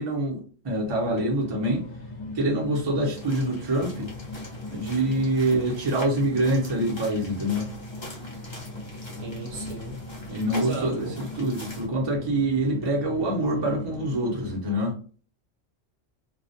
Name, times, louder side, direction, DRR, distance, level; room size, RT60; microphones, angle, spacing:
voice 1, 0.0-1.8 2.3-4.1 4.7-7.7 10.3-14.9, right 1 dB, 30° right, 0.6 m, -25 dB
sound 1, 0.8-14.6, left 2 dB, 75° left, 0.9 m, -39 dB
sound 2, 3.2-11.9, left 1 dB, 25° left, 0.8 m, -44 dB
voice 2, 9.2-10.0 10.5-11.2, right 3 dB, 65° right, 0.9 m, -35 dB
2.3 x 2.1 x 2.6 m
omnidirectional pair, 1.2 m